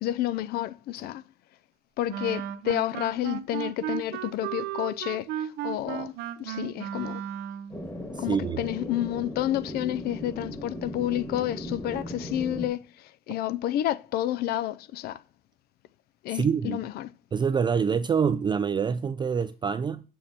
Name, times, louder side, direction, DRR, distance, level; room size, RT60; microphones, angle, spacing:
voice 1, 0.0-1.2 2.0-6.1 6.4-7.2 8.2-15.2 16.2-17.1, left 13 dB, 70° left, 0.4 m, -30 dB
Wind instrument woodwind instrument, 2.1-7.8, right 11 dB, 85° right, 0.5 m, -35 dB
sound 1, 7.7-12.7, equal, 20° left, 1.6 m, -37 dB
voice 2, 8.1-8.6 16.3-16.8 17.3-20.0, right 6 dB, 25° right, 0.3 m, -26 dB
7.0 x 5.6 x 2.8 m
cardioid pair, 110°, 17 cm